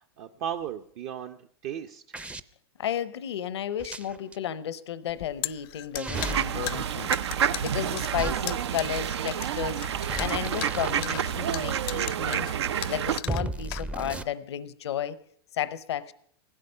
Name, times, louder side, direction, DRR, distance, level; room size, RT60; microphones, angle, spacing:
voice 1, 0.0-2.0, right 9 dB, 50° right, 7 dB, 0.7 m, -36 dB
sound 1, 2.1-2.4 3.8-4.4 6.0-6.5 8.2-8.3 9.9-11.2 13.3-14.2, right 2 dB, 10° right, 0.5 m, -34 dB
voice 2, 2.8-7.1 7.4-12.5 12.9-15.2 15.5-16.1, left 10 dB, 85° left, 17 dB, 0.7 m, -33 dB
sound 2, 5.1-14.3, left 19 dB, 55° left, 0.5 m, -38 dB
sound 3, 6.1-13.2, right 9 dB, 85° right, 0.6 m, -29 dB
15.5 x 12.5 x 5.5 m, 0.65 s
hypercardioid pair, 125°, 14 cm